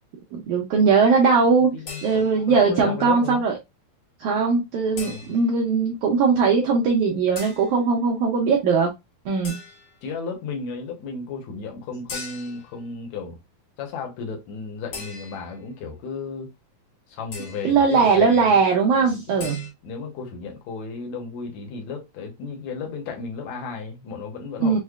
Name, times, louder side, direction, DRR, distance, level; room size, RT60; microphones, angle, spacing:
voice 1, 0.3-1.8 2.0-3.5 4.2-8.9 9.2-9.6 17.6-19.6 24.6-24.8, right 5 dB, 85° right, 1.7 m, -20 dB
voice 2, 1.6-3.4 4.9-5.3 10.0-13.4 13.8-16.5 17.1-18.6 18.9-24.8, left 5 dB, 65° left, 1.8 m, -34 dB
sound 1, 1.9-2.6 5.0-5.6 7.3-7.7 9.4-10.0 12.1-12.7 14.9-15.6 17.3-17.8 19.4-19.7, left 4 dB, 90° left, 1.0 m, -39 dB
6.3 x 2.1 x 2.4 m
omnidirectional pair, 4.3 m